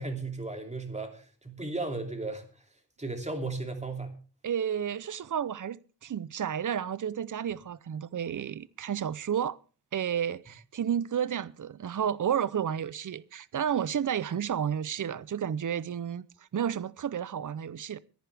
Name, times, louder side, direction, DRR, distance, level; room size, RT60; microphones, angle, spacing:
voice 1, 0.0-2.5 3.0-4.1, right 3 dB, 15° right, 2.7 m, -35 dB
voice 2, 4.4-9.6 9.9-16.2 16.5-18.0, right 8 dB, 50° right, 0.6 m, -31 dB
24.5 x 10.5 x 3.5 m
wide cardioid pair, 120°, 40 cm